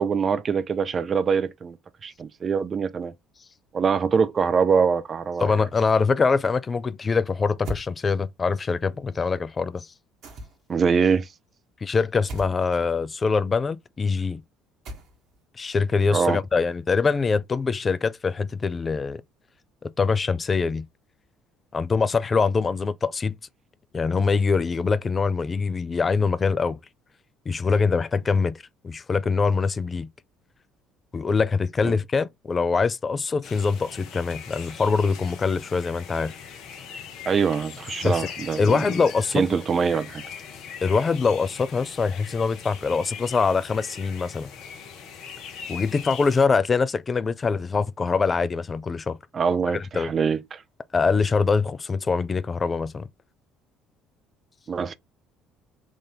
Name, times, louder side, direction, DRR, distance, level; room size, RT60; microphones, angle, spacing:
voice 1, 0.0-1.8 2.0-3.1 3.7-5.5 10.7-11.3 16.1-16.4 31.8-32.0 37.3-38.8 39.3-40.2 49.3-50.6 54.7-54.9, right 6 dB, 40° right, 0.5 m, -23 dB
voice 2, 5.4-9.9 11.8-14.4 15.6-19.2 19.8-20.8 21.7-23.3 23.9-26.8 27.5-30.1 31.1-36.3 38.0-38.3 38.6-39.5 40.8-44.5 45.7-49.2 49.7-50.1 50.9-53.1, left 4 dB, 30° left, 0.3 m, -24 dB
sound 1, 7.6-7.9 10.2-10.8 12.3-12.6 14.8-15.4, right 1 dB, 60° right, 1.2 m, -36 dB
sound 2, 33.4-46.5, left 7 dB, 60° left, 0.9 m, -41 dB
3.7 x 2.5 x 3.8 m
figure-of-eight pair, 55°, 0 cm